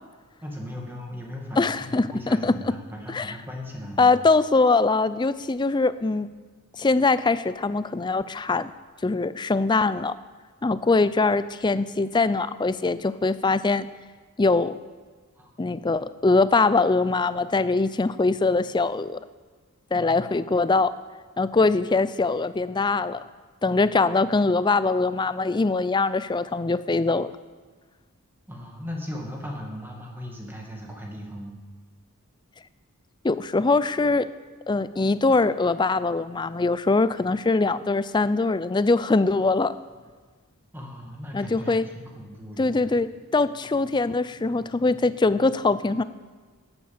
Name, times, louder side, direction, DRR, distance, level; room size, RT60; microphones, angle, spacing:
voice 1, 0.4-4.1 15.4-15.5 19.9-20.3 28.5-31.6 40.7-42.9, left 1 dB, 10° right, -1 dB, 2.2 m, -37 dB
voice 2, 1.6-2.7 3.1-3.3 4.0-6.3 6.8-8.7 9.0-10.1 10.6-13.9 14.4-14.8 15.6-19.2 19.9-20.9 21.4-23.2 23.6-27.3 33.2-34.3 34.7-39.8 41.3-41.8 42.6-46.0, left 3 dB, 20° left, 14 dB, 0.4 m, -22 dB
11.5 x 9.0 x 7.2 m, 1.4 s
head